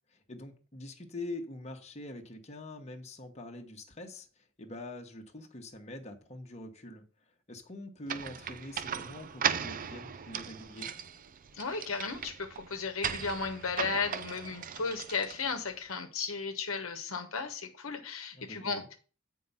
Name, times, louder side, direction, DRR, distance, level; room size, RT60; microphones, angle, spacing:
voice 1, 0.1-10.9 18.3-18.9, left 2 dB, 30° left, 1.2 m, -44 dB
sound 1, 8.1-15.7, right 7 dB, 40° right, 0.5 m, -37 dB
voice 2, 11.5-18.9, left 4 dB, 70° left, 1.1 m, -35 dB
8.5 x 4.7 x 5.5 m
head